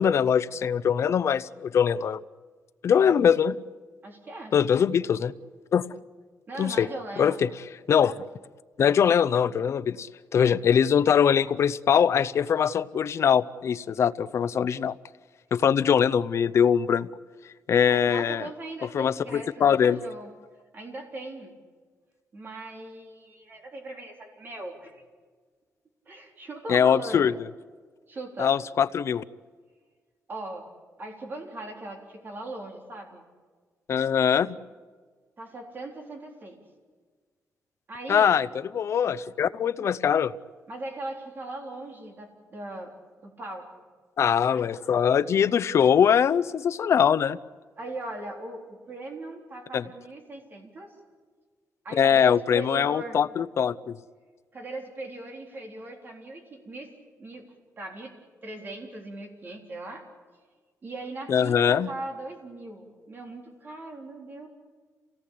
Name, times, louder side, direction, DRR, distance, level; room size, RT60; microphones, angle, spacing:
voice 1, 0.0-2.2 2.8-3.6 4.5-5.3 5.7-5.9 6.6-6.9 7.2-7.5 7.9-8.2 8.8-15.0 15.5-17.1 17.7-18.5 18.9-20.0 26.7-27.3 28.4-29.2 33.9-34.5 38.1-38.5 38.7-40.3 44.2-47.4 49.7-49.8 52.0-54.0 61.3-61.9, left 8 dB, 50° left, 14 dB, 0.7 m, -22 dB
voice 2, 4.0-4.5 6.5-7.5 17.7-20.3 20.7-21.5 22.3-25.0 26.1-27.3 28.1-28.5 30.3-30.7 31.0-33.2 35.4-36.6 37.9-38.3 40.7-42.9 43.2-43.7 44.5-44.6 47.8-50.9 51.8-53.2 54.5-56.9 57.2-57.5 57.8-58.1 58.4-60.1 60.8-64.5, right 2 dB, 35° right, 2 dB, 3.8 m, -39 dB
28.0 x 18.0 x 8.6 m, 1.5 s
wide cardioid pair, 170°, 6 cm